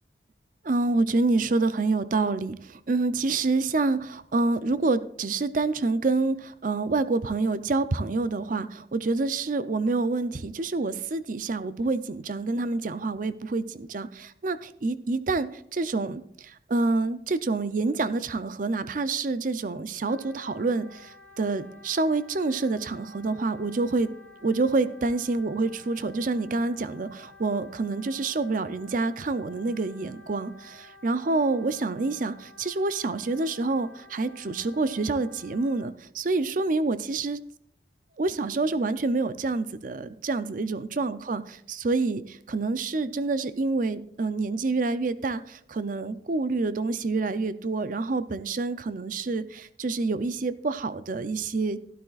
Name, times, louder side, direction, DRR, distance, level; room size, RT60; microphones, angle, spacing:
voice 1, 0.7-24.1 24.4-37.4 38.2-41.4 41.7-51.8, right 3 dB, 45° right, 13 dB, 0.5 m, -27 dB
Wind instrument woodwind instrument, 20.0-35.9, left 2 dB, 10° left, 0.8 m, -52 dB
12.5 x 12.0 x 2.4 m, 0.72 s
head